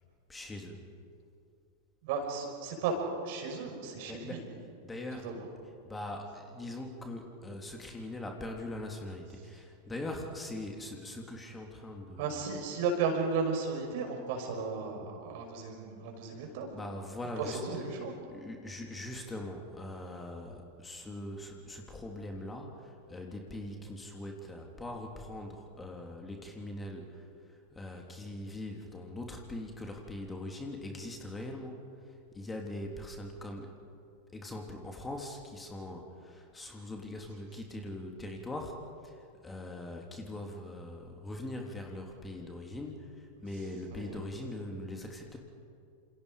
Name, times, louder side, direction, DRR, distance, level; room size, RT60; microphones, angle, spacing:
voice 1, 0.3-0.8 4.1-5.4 5.8-12.4 16.4-17.8 18.3-33.8 34.3-38.8 39.0-45.4, left 1 dB, 10° left, 2 dB, 3.2 m, -42 dB
voice 2, 2.0-3.0 3.2-4.4 5.2-5.4 12.2-16.7 17.4-18.1 43.9-44.2, right 5 dB, 50° right, 3 dB, 5.6 m, -34 dB
29.0 x 28.0 x 5.1 m, 2.4 s
figure-of-eight pair, 90°, 0 cm